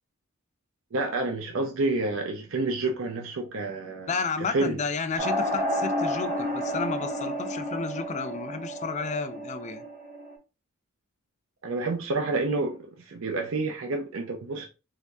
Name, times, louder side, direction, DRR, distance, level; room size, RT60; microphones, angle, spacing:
voice 1, 0.9-4.1 4.4-4.8 11.6-14.7, right 2 dB, 70° right, 0.6 m, -29 dB
voice 2, 4.1-9.8, left 4 dB, 35° left, 0.4 m, -32 dB
sound 1, 5.2-10.4, equal, 45° right, 1.5 m, -31 dB
3.4 x 3.3 x 2.5 m
head